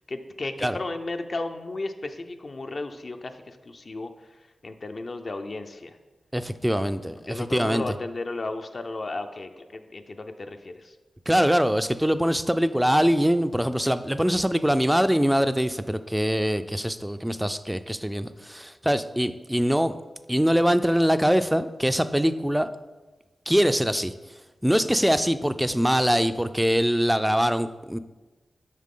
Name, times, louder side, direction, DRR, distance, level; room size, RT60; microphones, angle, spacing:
voice 1, 0.1-4.1 4.6-6.0 7.3-11.0, left 2 dB, 50° left, 6 dB, 0.5 m, -34 dB
voice 2, 6.3-7.8 11.3-19.9 20.3-22.7 23.5-24.1 24.6-28.0, equal, 5° right, 11 dB, 0.4 m, -23 dB
7.4 x 5.6 x 3.8 m, 1.2 s
cardioid pair, 55°, 0 cm